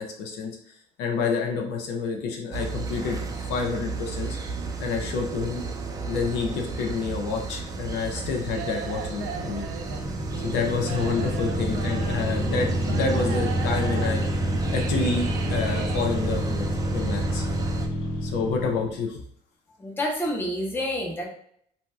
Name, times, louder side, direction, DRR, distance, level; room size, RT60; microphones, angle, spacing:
voice 1, 0.0-3.2 3.5-4.4 4.8-5.6 6.1-9.7 10.4-14.4 14.7-17.4 18.2-19.2, left 4 dB, 90° left, 1 dB, 0.6 m, -28 dB
sound 1, 2.5-17.9, right 3 dB, 20° right, 0.4 m, -31 dB
sound 2, 8.2-16.3, right 7 dB, 85° right, 0.4 m, -38 dB
sound 3, 9.2-19.0, left 1 dB, 60° left, 1.0 m, -30 dB
voice 2, 19.8-21.3, left 1 dB, 10° left, -1 dB, 0.8 m, -28 dB
2.7 x 2.2 x 3.1 m, 0.66 s
cardioid pair, 110°, 17 cm